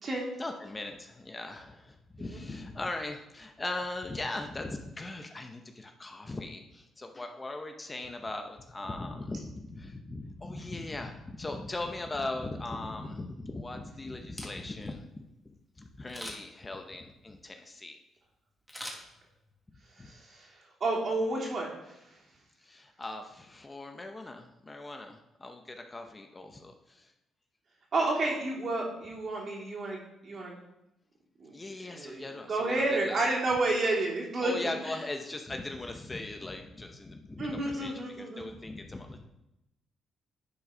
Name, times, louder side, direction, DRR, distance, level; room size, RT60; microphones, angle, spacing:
voice 1, 0.4-18.0 20.0-20.1 22.6-27.1 31.5-33.2 34.4-39.3, left 2 dB, 20° left, 5 dB, 0.8 m, -39 dB
Camera, 14.4-14.9 16.1-16.6 18.7-19.6 20.0-20.1, equal, ahead, 1.8 m, -43 dB
voice 2, 20.0-20.5 20.8-21.7 27.9-30.0 30.2-30.5 31.4-31.6 31.9-34.7 37.4-38.5, right 2 dB, 50° right, -3 dB, 3.0 m, -30 dB
9.9 x 4.6 x 5.0 m, 0.88 s
cardioid pair, 90°, 0 cm